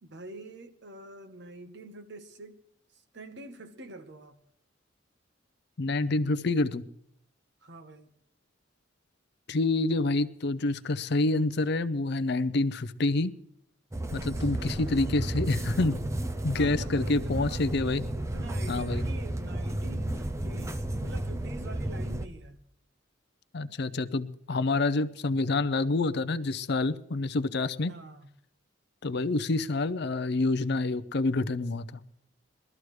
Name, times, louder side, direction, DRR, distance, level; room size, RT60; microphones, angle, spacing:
voice 1, 0.0-2.6 2.9-4.4 7.6-8.1 14.1-15.2 16.5-17.7 18.1-22.6 27.9-28.3, right 2 dB, 65° right, 1.1 m, -46 dB
voice 2, 5.8-6.8 9.5-13.3 14.1-16.0 16.4-18.0 18.7-19.0 23.5-27.9 29.0-32.0, left 2 dB, 60° left, 0.6 m, -27 dB
sound 1, 13.9-22.3, right 1 dB, 15° right, 0.6 m, -33 dB
21.5 x 13.5 x 3.2 m
head